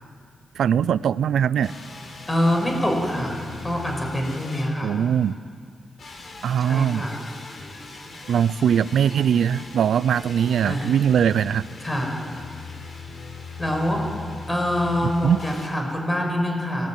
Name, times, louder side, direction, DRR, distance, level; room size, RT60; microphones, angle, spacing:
voice 1, 0.6-1.7 4.8-5.3 6.4-7.1 8.3-11.6 15.2-15.4, right 8 dB, 85° right, 18 dB, 0.5 m, -21 dB
sound 1, 1.6-5.4 6.0-15.7, left 3 dB, 55° left, 4.5 m, -40 dB
voice 2, 2.3-5.0 6.6-7.2 10.6-10.9 11.8-12.2 13.6-14.0 14.5-16.9, left 1 dB, 15° left, 2 dB, 5.7 m, -25 dB
26.0 x 19.5 x 9.3 m, 2.2 s
cardioid pair, 105°, 0 cm